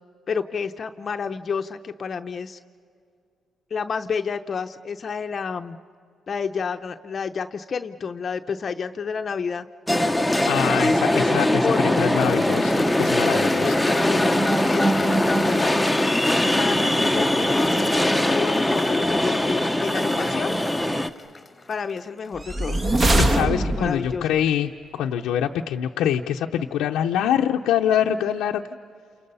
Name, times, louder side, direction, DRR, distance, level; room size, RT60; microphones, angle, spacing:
voice 1, 0.3-2.6 3.7-5.8 6.3-9.7 11.0-12.1 13.4-14.4 14.7-15.7 16.6-17.9 18.3-20.6 21.7-23.0 23.8-24.3, left 6 dB, 45° left, 7 dB, 0.7 m, -30 dB
sound 1, 9.9-21.1, left 1 dB, ahead, 1.0 m, -21 dB
voice 2, 10.5-11.7 12.0-13.7 23.2-28.7, left 9 dB, 90° left, 1 dB, 0.7 m, -24 dB
Cheering / Applause, 11.7-24.0, left 3 dB, 20° left, 1.3 m, -36 dB
sound 2, 22.4-24.2, right 1 dB, 35° right, 1.6 m, -21 dB
29.5 x 28.5 x 5.6 m, 2.3 s
cardioid pair, 90°, 0 cm